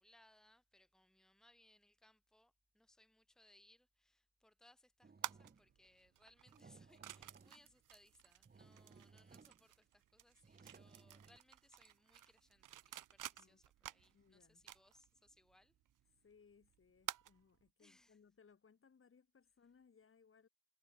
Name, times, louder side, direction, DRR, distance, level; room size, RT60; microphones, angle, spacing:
voice 1, 0.0-15.7 17.8-18.2, left 1 dB, ahead, 2.3 m, -70 dB
sound 1, 5.0-5.9 6.4-7.7 8.2-8.3 8.5-9.7 10.4-11.4, right 4 dB, 30° right, 2.9 m, -63 dB
sound 2, 5.2-17.7, right 12 dB, 80° right, 1.3 m, -53 dB
voice 2, 14.0-14.6 16.2-20.5, left 5 dB, 40° left, 4.1 m, -68 dB
cardioid pair, 95°, 31 cm